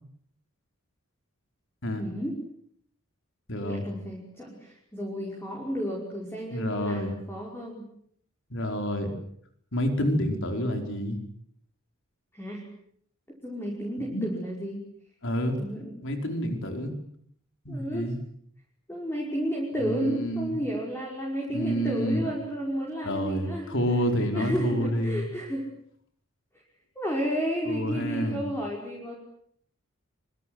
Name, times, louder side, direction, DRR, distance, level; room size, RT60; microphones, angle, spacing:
voice 1, 2.0-2.4 3.6-7.9 12.3-12.6 13.4-14.8 15.6-15.9 17.7-18.1 18.9-23.7 24.3-25.7 27.0-29.2, equal, 10° left, -3 dB, 5.5 m, -32 dB
voice 2, 3.5-3.9 6.5-7.1 8.5-9.1 9.7-11.2 14.1-14.3 15.2-15.6 16.0-16.9 17.6-18.2 19.8-20.5 21.5-22.2 23.0-25.3 27.6-28.4, equal, 65° left, 5 dB, 5.2 m, -28 dB
25.0 x 24.5 x 8.1 m, 0.66 s
head